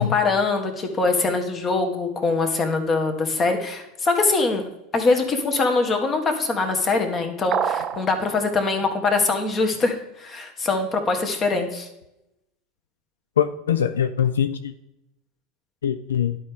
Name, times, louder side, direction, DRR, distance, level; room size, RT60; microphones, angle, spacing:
voice 1, 0.0-4.7 4.9-11.9, left 3 dB, 30° left, 5 dB, 1.4 m, -23 dB
sound 1, 7.5-8.1, right 8 dB, 40° right, 0.5 m, -24 dB
voice 2, 13.4-14.7 15.8-16.4, left 9 dB, 80° left, 10 dB, 0.3 m, -22 dB
11.5 x 4.6 x 3.6 m, 0.89 s
hypercardioid pair, 85°, 0 cm